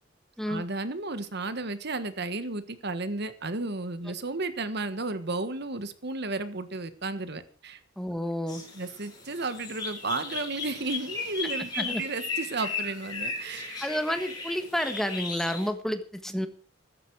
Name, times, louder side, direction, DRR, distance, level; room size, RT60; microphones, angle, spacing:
voice 1, 0.4-7.8 8.7-13.8, right 3 dB, 60° right, 11 dB, 1.5 m, -33 dB
voice 2, 8.0-8.6 11.8-12.0 13.8-16.5, equal, ahead, 8 dB, 1.4 m, -30 dB
sound 1, 8.5-15.7, left 4 dB, 20° left, 6.8 m, -36 dB
15.5 x 14.0 x 4.8 m, 0.39 s
head